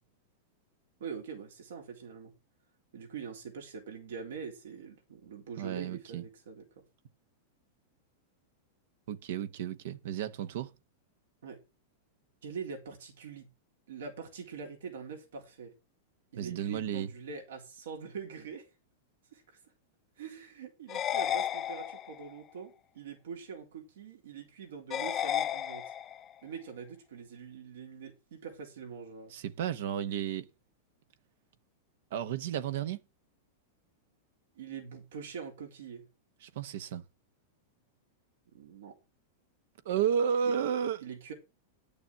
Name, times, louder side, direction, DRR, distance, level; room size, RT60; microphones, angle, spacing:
voice 1, 1.0-2.3 2.9-6.6 11.4-11.6 12.4-13.5 13.9-15.7 16.3-18.7 19.3-19.6 20.2-25.9 26.4-29.3 34.6-36.1 38.5-39.0 41.0-41.3, right 6 dB, 85° right, 3.7 m, -44 dB
voice 2, 5.6-6.2 9.1-10.7 16.4-17.1 29.3-30.5 32.1-33.0 36.4-37.0 39.8-41.0, right 8 dB, 70° right, 1.0 m, -32 dB
sound 1, 20.9-22.3 24.9-26.3, left 10 dB, 25° left, 0.6 m, -33 dB
10.5 x 6.8 x 5.9 m
supercardioid pair, 140°, 0 cm